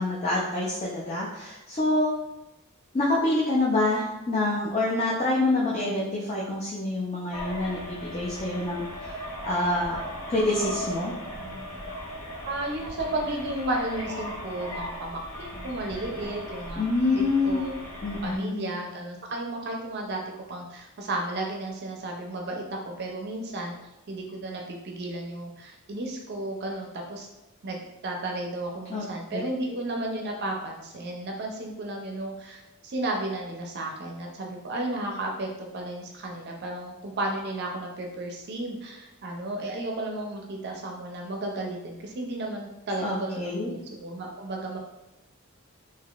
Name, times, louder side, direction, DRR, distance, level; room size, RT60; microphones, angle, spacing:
voice 1, 0.0-2.1 2.9-10.0 10.3-11.1 16.8-17.6 18.0-18.6 28.9-29.0 43.0-43.7, left 2 dB, 30° left, -5 dB, 0.4 m, -26 dB
sound 1, 7.3-18.4, equal, 80° left, 1.0 m, -38 dB
voice 2, 12.5-16.8 17.1-17.7 18.2-20.2 20.5-23.7 24.1-27.3 27.6-44.8, right 1 dB, 50° right, 1 dB, 0.5 m, -33 dB
3.6 x 2.7 x 2.4 m, 0.96 s
head